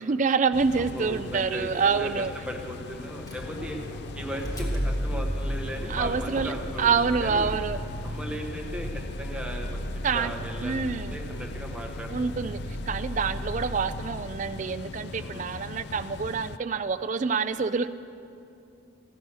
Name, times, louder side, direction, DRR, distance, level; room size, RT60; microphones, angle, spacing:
voice 1, 0.0-2.3 5.9-6.5 6.8-7.8 10.0-10.3 10.6-11.2 12.1-12.6 12.9-17.9, right 5 dB, 35° right, 12 dB, 0.3 m, -27 dB
sound 1, 0.5-16.6, left 4 dB, 50° left, 0.3 m, -41 dB
voice 2, 0.8-3.8 4.1-6.9 7.2-7.5 8.0-9.8 10.1-12.3 15.2-15.4, equal, 5° right, 1 dB, 1.1 m, -37 dB
Motor vehicle (road), 3.2-14.4, equal, 15° left, 1.3 m, -34 dB
14.5 x 10.0 x 6.3 m, 2.6 s
head